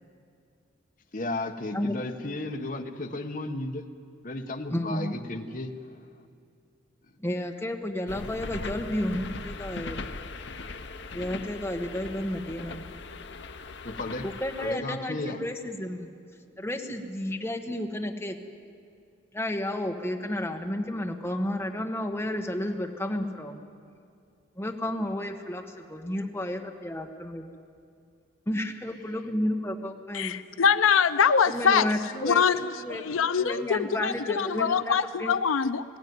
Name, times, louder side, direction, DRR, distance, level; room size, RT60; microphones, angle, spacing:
voice 1, 1.1-3.9 4.2-6.2 13.8-14.3 14.6-15.4, left 2 dB, 40° left, 5 dB, 1.2 m, -34 dB
voice 2, 4.7-5.1 7.2-10.0 11.1-12.8 14.2-16.1 16.6-18.4 19.3-23.6 24.6-25.6 25.9-27.5 28.5-30.3 31.5-32.4 32.8-33.0 33.4-35.4, left 1 dB, 10° left, 3 dB, 1.2 m, -32 dB
sound 1, 8.1-14.7, left 3 dB, 60° left, 0.9 m, -39 dB
voice 3, 30.1-35.8, left 6 dB, 85° left, 12 dB, 0.5 m, -24 dB
20.0 x 16.0 x 9.5 m, 2.3 s
head